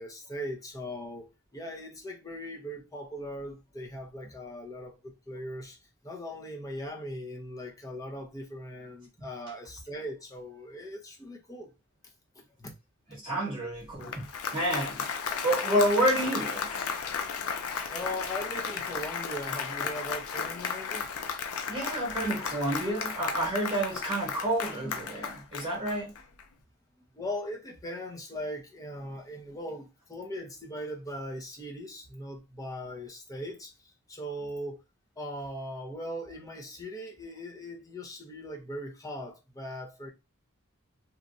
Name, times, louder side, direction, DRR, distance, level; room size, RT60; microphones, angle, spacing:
voice 1, 0.0-5.8 6.0-11.7 12.4-12.7 17.9-21.1 27.1-34.8 35.2-40.1, equal, 15° left, 0.6 m, -39 dB
voice 2, 13.1-14.3 14.5-15.1 15.4-16.9 21.7-26.1, right 1 dB, 25° right, 1.2 m, -29 dB
Applause, 13.8-26.4, left 6 dB, 75° left, 0.5 m, -34 dB
3.1 x 2.4 x 2.5 m
head